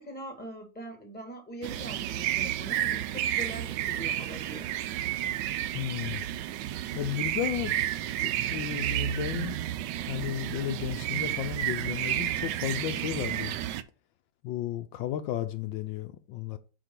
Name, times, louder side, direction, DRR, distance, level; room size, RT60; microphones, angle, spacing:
voice 1, 0.0-4.7, right 1 dB, 5° left, 1.2 m, -42 dB
sound 1, 1.6-13.8, right 12 dB, 75° right, 1.1 m, -31 dB
voice 2, 5.7-6.2 6.9-7.8 8.2-9.6 10.0-13.6 14.4-16.6, left 12 dB, 80° left, 1.3 m, -33 dB
5.1 x 4.5 x 5.9 m
omnidirectional pair, 2.1 m